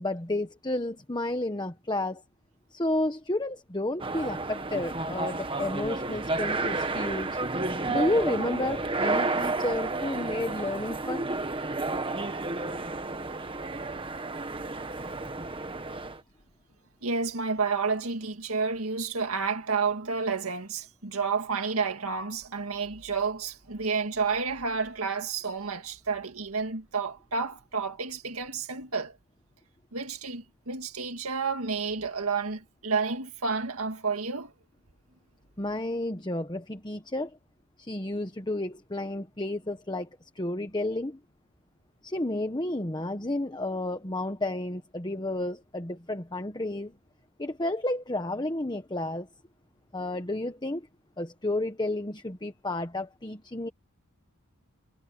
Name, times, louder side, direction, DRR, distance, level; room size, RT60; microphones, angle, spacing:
voice 1, 0.0-2.2 2.7-7.4 7.9-11.3 35.6-37.4 37.8-40.1 40.3-41.2 42.0-46.9 47.4-49.3 49.9-50.9 51.2-53.7, left 1 dB, 20° left, 1.2 m, -31 dB
sound 1, 4.0-16.2, right 3 dB, 25° right, 1.4 m, -31 dB
voice 2, 12.2-12.9 17.0-29.2 29.9-34.5, right 5 dB, 90° right, 1.9 m, -30 dB
head